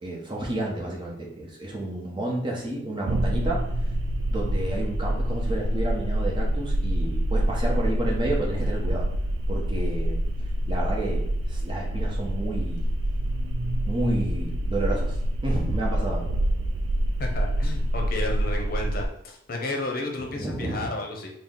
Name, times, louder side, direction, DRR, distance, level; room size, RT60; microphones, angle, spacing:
voice 1, 0.0-3.7 4.3-9.1 9.5-10.2 10.7-12.8 13.8-15.2 15.4-16.3 20.2-20.9, right 1 dB, 25° right, -2 dB, 0.8 m, -31 dB
sound 1, 3.1-19.1, right 1 dB, 90° right, 0.3 m, -26 dB
voice 2, 17.2-21.3, left 2 dB, 50° left, 1 dB, 0.7 m, -32 dB
4.2 x 2.1 x 3.6 m, 0.73 s
head